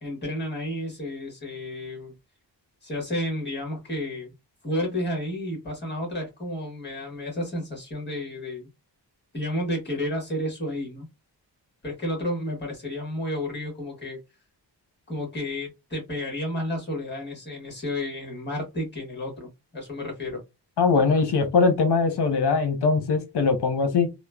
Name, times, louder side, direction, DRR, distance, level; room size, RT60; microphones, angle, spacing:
voice 1, 0.0-2.1 2.8-4.3 4.6-8.7 9.3-11.1 11.8-14.2 15.1-20.4, left 1 dB, 25° left, 1.4 m, -31 dB
voice 2, 20.8-24.1, left 4 dB, 65° left, 0.8 m, -21 dB
3.0 x 2.1 x 2.2 m
wide cardioid pair, 110°, 43 cm